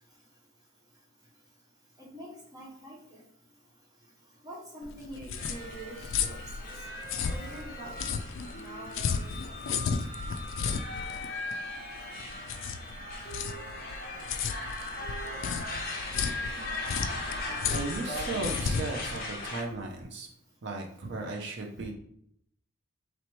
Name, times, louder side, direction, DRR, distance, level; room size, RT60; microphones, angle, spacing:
voice 1, 2.0-3.2 4.4-6.7 7.3-7.9 8.6-9.5, right 1 dB, 15° right, -4 dB, 0.8 m, -45 dB
sound 1, 4.8-20.0, left 6 dB, 60° left, 0.3 m, -34 dB
sound 2, 5.3-19.6, left 2 dB, 40° left, 0.8 m, -38 dB
voice 2, 17.7-20.3 20.6-21.9, right 3 dB, 50° right, 1 dB, 0.5 m, -36 dB
3.1 x 3.1 x 4.4 m, 0.70 s
head